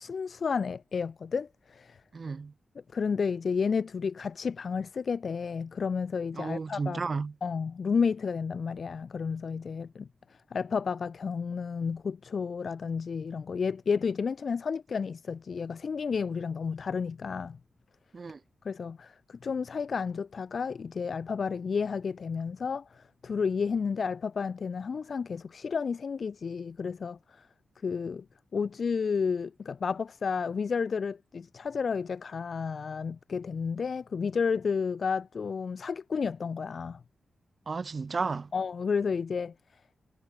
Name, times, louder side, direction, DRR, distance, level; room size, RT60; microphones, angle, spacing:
voice 1, 0.0-2.0 2.9-7.1 7.4-10.1 10.5-17.6 18.6-27.5 27.8-28.2 28.5-37.0 38.5-39.5, left 5 dB, 55° left, 2.9 m, -31 dB
voice 2, 2.1-2.5 6.4-7.3 18.1-18.4 37.7-38.5, right 4 dB, 45° right, 0.7 m, -33 dB
wide cardioid pair, 100°, 0 cm